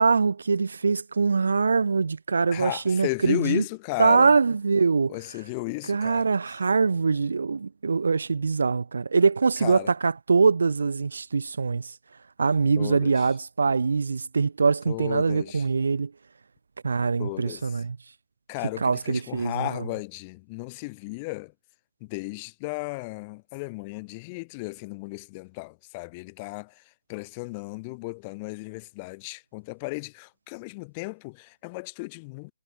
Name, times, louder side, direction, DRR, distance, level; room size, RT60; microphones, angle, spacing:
voice 1, 0.0-3.6 4.0-5.2 5.9-11.9 12.4-16.1 16.8-18.0 18.8-19.9, right 4 dB, 85° right, 0.4 m, -23 dB
voice 2, 2.4-4.3 5.1-6.2 9.6-9.9 12.8-13.2 14.9-15.6 17.2-17.6 18.5-21.5 22.0-26.7 27.1-32.5, left 27 dB, 25° left, 0.5 m, -34 dB
hypercardioid pair, 160°, 0 cm